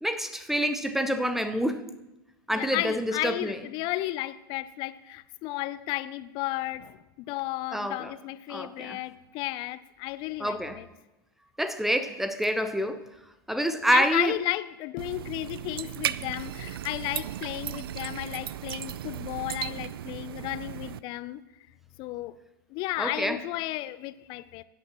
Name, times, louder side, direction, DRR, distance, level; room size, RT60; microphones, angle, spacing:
voice 1, 0.0-1.8 2.5-3.6 7.7-8.1 8.5-9.0 10.4-10.8 11.6-13.0 13.5-14.3 23.0-23.4, equal, ahead, 0.7 m, -27 dB
voice 2, 2.5-10.9 13.9-21.4 22.0-22.4 22.7-24.6, left 17 dB, 40° left, 0.5 m, -33 dB
sound 1, 15.0-21.0, right 11 dB, 75° right, 0.4 m, -36 dB
16.0 x 9.6 x 3.0 m
hypercardioid pair, 115°, 12 cm